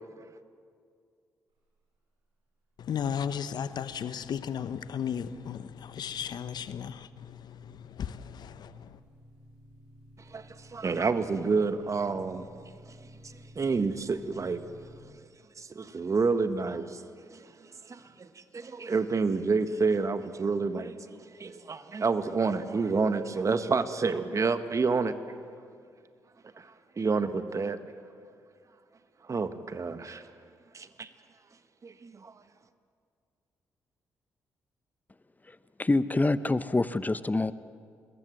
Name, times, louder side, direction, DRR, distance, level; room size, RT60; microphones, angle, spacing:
voice 1, 2.8-9.0, left 8 dB, 60° left, 1.0 m, -35 dB
sound 1, 5.4-15.0, equal, 75° right, 7.1 m, -54 dB
voice 2, 10.3-12.5 13.5-14.6 15.6-17.0 17.3-17.5 17.8-25.2 26.6-27.8 29.2-30.3 31.8-32.3, right 4 dB, 40° right, 1.5 m, -29 dB
voice 3, 35.5-37.5, left 2 dB, 20° left, 0.9 m, -26 dB
25.5 x 21.5 x 7.8 m
hypercardioid pair, 45°, 8 cm